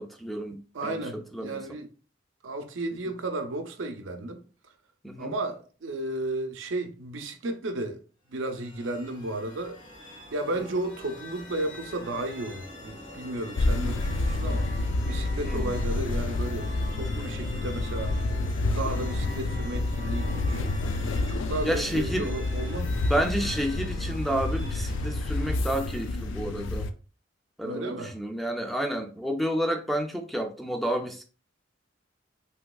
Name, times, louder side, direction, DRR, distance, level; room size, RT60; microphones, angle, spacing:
voice 1, 0.0-1.0 1.3-1.6 5.0-5.3 15.4-15.7 18.8-19.0 21.6-22.3 23.1-26.9 27.6-31.2, equal, ahead, 0.3 m, -30 dB
voice 2, 0.7-1.9 2.4-4.4 5.2-8.0 8.3-9.8 10.3-14.7 15.1-18.1 18.6-20.7 21.3-23.0 27.6-28.1, right 2 dB, 85° right, 0.6 m, -33 dB
sound 1, 8.3-26.5, left 1 dB, 90° left, 1.5 m, -43 dB
sound 2, 13.6-26.9, left 2 dB, 75° left, 0.3 m, -29 dB
sound 3, 16.6-25.9, left 1 dB, 50° left, 0.7 m, -43 dB
3.4 x 2.9 x 2.3 m
head